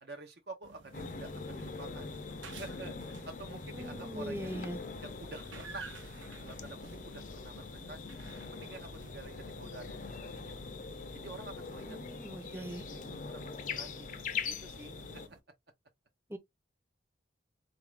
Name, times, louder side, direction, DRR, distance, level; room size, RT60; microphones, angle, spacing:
voice 1, 0.0-2.1 2.6-4.6 5.0-5.9 6.4-6.8 7.0-8.1 8.5-10.6 11.1-12.0 12.3-15.0, right 3 dB, 60° right, 0.6 m, -49 dB
sound 1, 0.6-15.4, right 4 dB, 90° right, 0.8 m, -54 dB
sound 2, 0.9-15.3, left 4 dB, 40° left, 0.5 m, -42 dB
voice 2, 3.7-4.8 11.9-12.8 16.3-16.4, right 1 dB, 15° right, 0.5 m, -41 dB
3.9 x 2.5 x 3.2 m
head